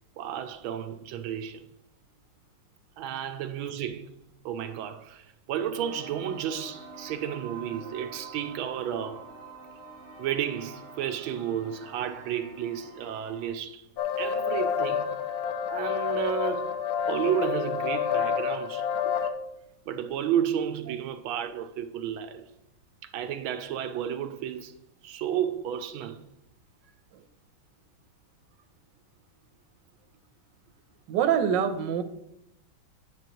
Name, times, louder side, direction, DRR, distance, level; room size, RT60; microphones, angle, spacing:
voice 1, 0.2-1.6 3.0-4.1 4.4-9.3 10.2-13.8 14.2-15.1 15.7-19.1 19.9-22.5 23.0-24.8 25.0-26.2, right 9 dB, 90° right, 1.4 m, -32 dB
sound 1, 5.7-13.5, right 3 dB, 75° left, 5.2 m, -46 dB
sound 2, 14.0-19.3, left 7 dB, 60° left, 1.1 m, -28 dB
voice 2, 31.1-32.0, right 8 dB, 70° right, 1.3 m, -25 dB
9.4 x 9.0 x 3.0 m
omnidirectional pair, 2.2 m